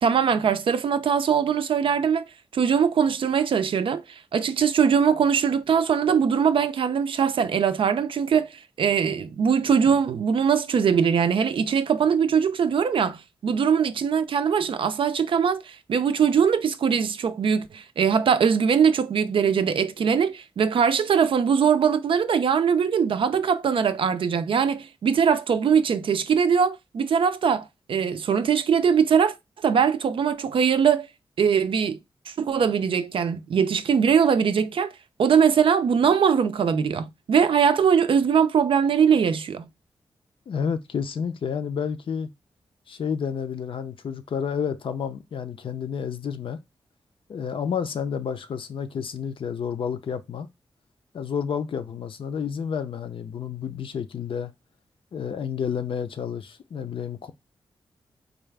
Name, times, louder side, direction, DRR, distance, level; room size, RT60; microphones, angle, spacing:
voice 1, 0.0-2.3 2.5-29.3 29.6-31.1 31.4-32.0 32.3-34.9 35.2-39.7, right 7 dB, 70° right, 0.4 m, -21 dB
voice 2, 40.5-42.3 42.9-46.6 47.3-50.5 51.1-54.5 55.1-57.3, left 7 dB, 70° left, 0.5 m, -30 dB
3.8 x 2.3 x 3.3 m
cardioid pair, 75°, 9 cm